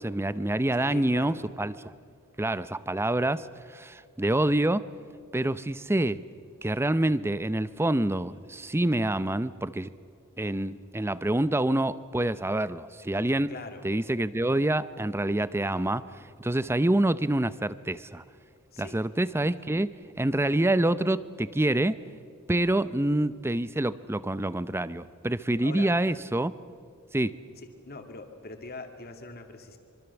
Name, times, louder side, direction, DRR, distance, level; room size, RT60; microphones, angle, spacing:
voice 1, 0.0-1.9 2.4-4.9 5.3-6.2 6.6-9.9 10.4-13.5 13.8-16.1 16.4-18.2 18.8-22.0 22.5-26.5 27.1-27.3, right 1 dB, 10° right, 15 dB, 0.6 m, -27 dB
voice 2, 0.8-1.4 13.5-13.8 18.7-19.1 25.6-25.9 27.8-29.8, left 3 dB, 45° left, 5 dB, 2.5 m, -42 dB
25.5 x 24.0 x 7.1 m, 2.4 s
head